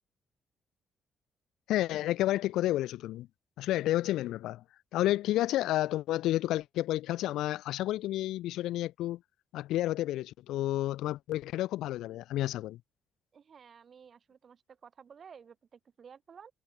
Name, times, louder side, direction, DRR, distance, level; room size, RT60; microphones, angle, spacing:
voice 1, 1.7-3.3 3.6-4.6 4.9-9.2 9.5-12.8, left 15 dB, 85° left, 0.3 m, -30 dB
voice 2, 13.3-16.5, right 7 dB, 50° right, 2.9 m, -53 dB
cardioid pair, 90°, 0 cm